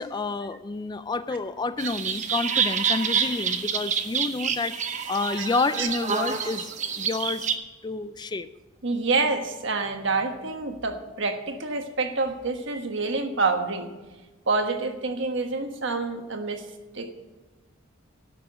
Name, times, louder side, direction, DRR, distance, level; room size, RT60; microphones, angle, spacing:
voice 1, 0.0-6.7 6.9-7.5 7.8-8.5, left 3 dB, 20° left, 13 dB, 0.4 m, -29 dB
sound 1, 1.8-7.6, right 7 dB, 35° right, 0.8 m, -27 dB
voice 2, 8.8-13.9 14.5-16.6 16.9-17.1, right 3 dB, 60° right, 5 dB, 1.3 m, -27 dB
12.5 x 6.1 x 9.1 m, 1.2 s
head